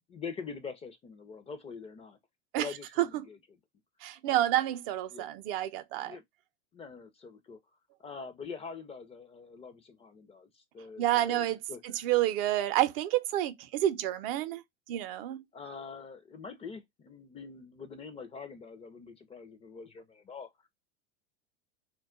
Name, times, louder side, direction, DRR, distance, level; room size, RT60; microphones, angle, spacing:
voice 1, 0.1-2.2 2.6-3.4 4.3-4.7 5.1-5.3 6.0-6.2 6.7-7.6 8.0-11.8 15.5-20.7, left 5 dB, 20° left, 0.4 m, -44 dB
voice 2, 4.0-6.1 11.0-11.6 11.8-14.6 14.9-15.4, right 13 dB, 60° right, 0.5 m, -29 dB
2.2 x 2.1 x 3.6 m
hypercardioid pair, 105°, 31 cm